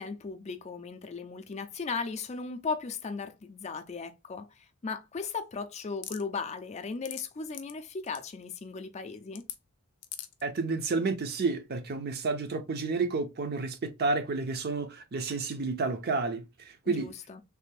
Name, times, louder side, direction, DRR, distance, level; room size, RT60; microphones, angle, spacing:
voice 1, 0.0-9.4 16.9-17.4, left 4 dB, 30° left, 0.4 m, -37 dB
sound 1, 6.0-6.2 6.8-7.2 7.5-7.7 8.1-8.2 9.3-9.6 10.0-10.4, left 11 dB, 90° left, 0.5 m, -40 dB
voice 2, 10.4-17.1, right 3 dB, 45° right, 0.5 m, -31 dB
3.3 x 2.5 x 3.2 m
head